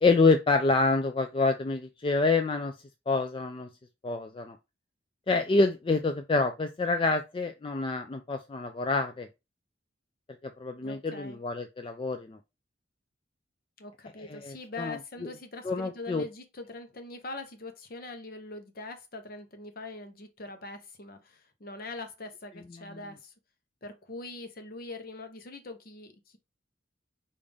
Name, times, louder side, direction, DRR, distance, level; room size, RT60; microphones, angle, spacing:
voice 1, 0.0-2.7 3.1-3.7 4.0-4.6 5.3-9.3 10.6-12.4 14.2-15.0 15.6-16.2 22.8-23.0, left 3 dB, 25° left, 0.3 m, -27 dB
voice 2, 10.8-11.4 13.8-23.3 23.8-26.4, left 2 dB, 50° left, 0.8 m, -42 dB
5.2 x 2.5 x 3.4 m
head